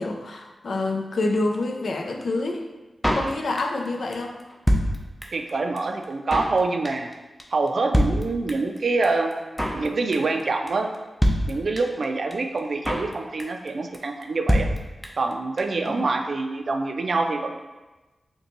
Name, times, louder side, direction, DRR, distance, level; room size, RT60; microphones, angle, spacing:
voice 1, 0.0-2.6 3.1-4.4 15.8-16.1, left 2 dB, 70° left, 3 dB, 0.4 m, -27 dB
Drum kit, 3.0-3.9 4.1-4.2 4.4-5.5 5.8-5.9 6.0-6.6 6.8-7.1 7.4-7.5 7.7-7.8 7.9-8.8 9.0-9.1 9.3-9.9 10.1-10.4 10.7-10.8 10.9-11.0 11.2-12.0 12.3-12.4 12.6-13.1 13.4-13.7 13.9-14.0 14.2-14.3 14.5-15.3 15.6-15.7 15.8-15.9, equal, 5° left, 0.6 m, -24 dB
voice 2, 5.3-7.1 7.5-9.3 9.7-10.9 11.5-14.7 15.2-17.6, right 3 dB, 65° right, 5 dB, 0.4 m, -25 dB
5.1 x 2.2 x 3.0 m, 1.1 s
cardioid pair, 50°, 0 cm